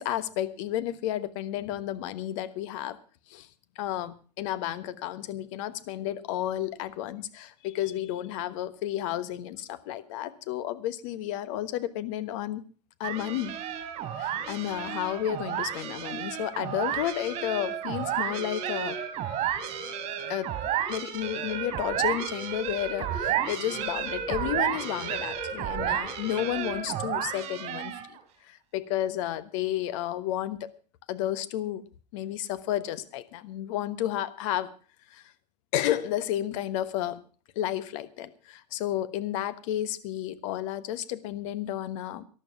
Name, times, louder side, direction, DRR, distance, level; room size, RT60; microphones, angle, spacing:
voice 1, 0.0-3.0 3.3-3.5 3.7-12.6 13.0-13.6 14.2-19.0 20.3-20.5 20.9-28.2 28.4-30.7 31.1-31.8 32.1-34.7 35.1-35.2 35.7-37.2 37.5-42.2, left 12 dB, 50° left, 13 dB, 1.3 m, -32 dB
sound 1, 13.0-28.2, right 9 dB, 35° right, 3.4 m, -32 dB
13.5 x 11.5 x 5.9 m, 0.39 s
hypercardioid pair, 100°, 21 cm